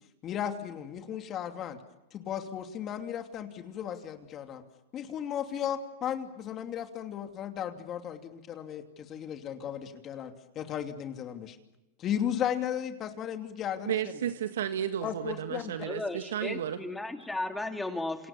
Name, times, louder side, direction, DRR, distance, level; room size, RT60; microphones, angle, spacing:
voice 1, 0.2-1.8 2.1-4.6 4.9-11.6 12.0-14.0 15.0-15.7, left 9 dB, 35° left, 6 dB, 2.8 m, -35 dB
voice 2, 13.9-16.8, right 10 dB, 80° right, 8 dB, 1.7 m, -33 dB
voice 3, 15.8-18.3, left 2 dB, 5° left, 5 dB, 3.0 m, -35 dB
28.5 x 27.5 x 7.3 m, 0.98 s
hypercardioid pair, 115°, 0 cm